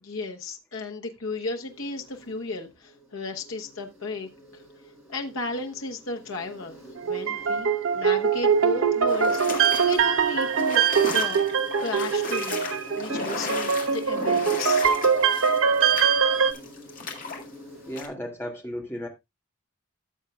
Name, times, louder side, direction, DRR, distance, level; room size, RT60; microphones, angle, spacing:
voice 1, 0.0-4.6 5.1-6.8 7.0-7.7 7.9-10.8 11.1-11.4 11.8-14.8, left 3 dB, 85° left, 1.2 m, -34 dB
Insect, 1.3-18.0, equal, 5° right, 5.5 m, -47 dB
sound 1, 7.0-16.5, right 6 dB, 85° right, 0.9 m, -23 dB
sound 2, 9.1-17.4 18.0-18.1, left 4 dB, 40° left, 2.0 m, -35 dB
voice 2, 17.9-19.1, equal, 10° left, 1.9 m, -34 dB
14.0 x 7.2 x 2.4 m
head